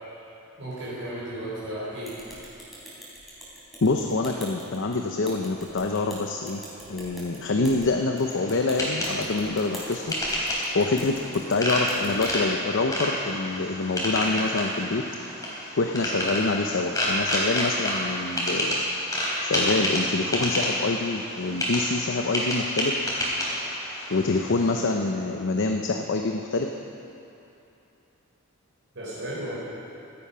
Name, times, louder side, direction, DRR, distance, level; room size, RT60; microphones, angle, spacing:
voice 1, 0.6-2.2 28.9-29.6, right 1 dB, 60° right, -9 dB, 4.3 m, -34 dB
sound 1, 2.0-12.3, right 1 dB, ahead, 4.0 m, -43 dB
voice 2, 3.8-6.6 6.9-10.1 10.7-15.0 15.8-18.8 19.4-23.0 24.1-26.7, left 3 dB, 60° left, 3 dB, 0.7 m, -26 dB
sound 2, 8.2-24.9, equal, 15° left, 3.5 m, -29 dB
16.0 x 12.5 x 5.6 m, 2.9 s
head